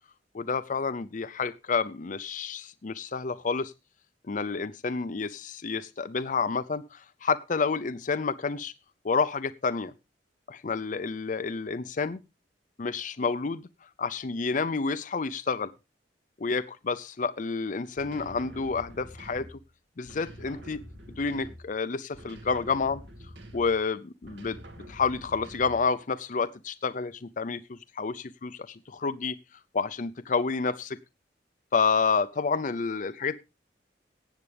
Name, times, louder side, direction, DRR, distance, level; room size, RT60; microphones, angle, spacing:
voice 1, 0.3-3.7 4.3-8.7 9.0-9.9 10.5-12.2 12.8-13.7 14.0-15.7 16.4-19.6 20.0-20.8 21.2-23.0 23.5-24.6 24.9-29.4 29.7-31.0 31.7-33.4, left 4 dB, 45° left, 13 dB, 0.5 m, -29 dB
sound 1, 18.0-19.7 20.0-21.8 22.1-23.8 24.2-25.9, equal, 75° right, 2.0 m, -46 dB
18.0 x 8.1 x 3.3 m, 0.26 s
head